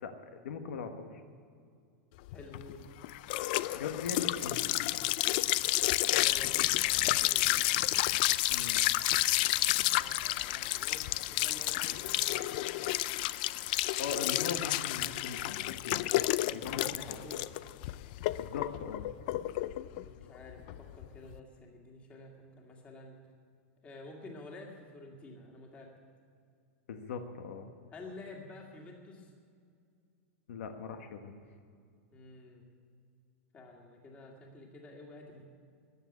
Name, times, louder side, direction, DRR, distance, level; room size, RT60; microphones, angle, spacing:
voice 1, 0.0-1.2 3.7-4.6 8.5-8.9 14.0-16.1 16.5-17.2 18.4-19.1 26.9-27.7 30.5-31.4, left 5 dB, 80° left, 6 dB, 1.4 m, -40 dB
sound 1, 2.3-21.4, left 17 dB, 40° left, 0.4 m, -30 dB
voice 2, 2.3-2.8 6.0-7.6 9.9-12.7 16.4-17.5 19.8-22.3 22.6-23.2 23.8-25.9 27.9-29.3 32.1-32.6 33.5-35.5, left 2 dB, 15° left, 0 dB, 2.2 m, -50 dB
14.5 x 9.7 x 9.8 m, 2.2 s
supercardioid pair, 170°, 7 cm